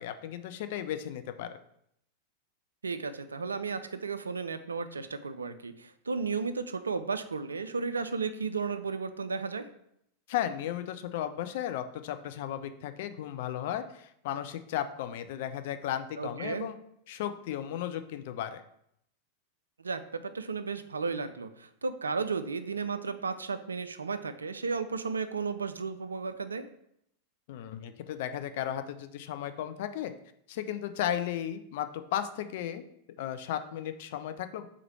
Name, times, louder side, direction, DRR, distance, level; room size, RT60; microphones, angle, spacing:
voice 1, 0.0-1.6 10.3-16.8 17.1-18.6 27.5-30.1 30.5-32.8 33.2-34.7, left 10 dB, 50° left, 9 dB, 0.3 m, -35 dB
voice 2, 2.8-9.7 16.2-16.7 19.8-26.7, right 4 dB, 75° right, 11 dB, 0.3 m, -34 dB
3.7 x 3.1 x 4.5 m, 0.74 s
figure-of-eight pair, 90°, 0 cm